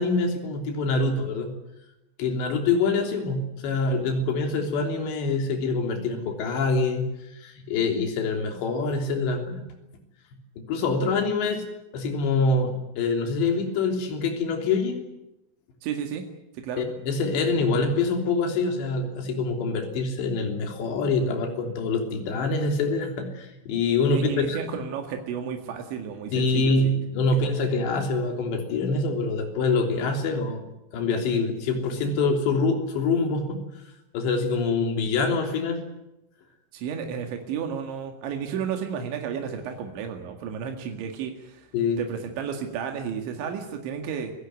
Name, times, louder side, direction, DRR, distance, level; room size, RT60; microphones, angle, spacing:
voice 1, 0.0-1.5 2.2-9.6 10.6-11.6 11.9-15.0 16.8-24.6 26.3-30.6 30.9-33.6 34.1-35.8 41.7-42.0, left 3 dB, 75° left, 4 dB, 5.5 m, -25 dB
voice 2, 15.8-16.3 16.6-16.8 24.1-26.9 36.7-41.7 42.0-44.3, right 7 dB, 85° right, 4 dB, 4.4 m, -32 dB
28.0 x 16.5 x 9.5 m, 0.91 s
omnidirectional pair, 5.1 m